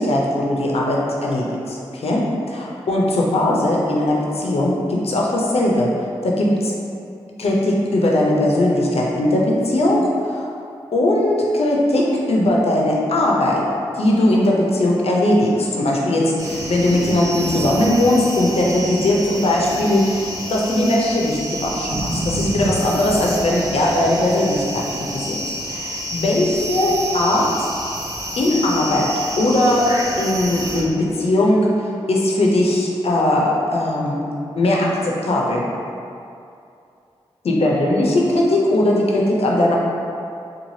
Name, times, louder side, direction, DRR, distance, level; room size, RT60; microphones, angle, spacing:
voice 1, 0.0-5.9 6.2-6.7 7.4-10.5 10.9-13.6 13.9-24.8 25.1-25.4 25.7-27.7 28.4-29.1 29.4-29.9 30.2-31.7 32.1-34.3 34.6-35.6 37.4-39.8, left 1 dB, 65° left, -3 dB, 0.5 m, -19 dB
sound 1, 16.4-30.8, right 1 dB, 30° right, 0.6 m, -28 dB
3.1 x 2.3 x 2.7 m, 2.6 s
cardioid pair, 45°, 11 cm